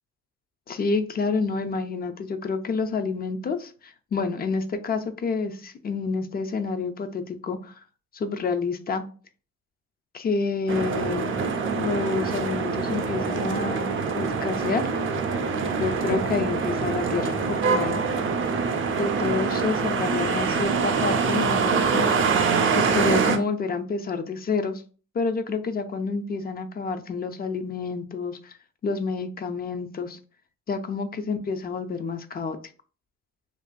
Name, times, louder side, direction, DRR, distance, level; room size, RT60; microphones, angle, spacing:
voice 1, 0.7-7.7 8.1-9.0 10.1-11.3 11.7-13.9 14.2-14.9 15.8-18.0 19.0-22.3 22.7-24.8 25.1-28.5 28.8-30.2 30.7-32.6, left 4 dB, 30° left, 8 dB, 0.4 m, -28 dB
sound 1, 10.7-23.4, right 5 dB, 45° right, 0.4 m, -25 dB
2.6 x 2.5 x 2.2 m, 0.38 s
cardioid pair, 90°, 30 cm